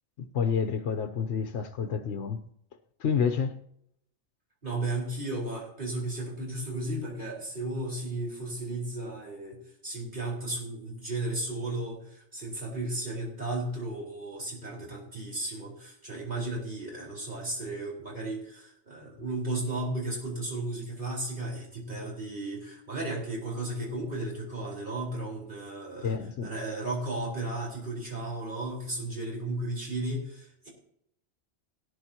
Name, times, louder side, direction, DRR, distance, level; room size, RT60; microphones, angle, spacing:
voice 1, 0.3-2.4 3.0-3.6 26.0-26.5, left 6 dB, 70° left, 1.0 m, -29 dB
voice 2, 4.6-30.7, right 2 dB, 45° right, 4.6 m, -34 dB
18.5 x 10.0 x 2.9 m
omnidirectional pair, 1.2 m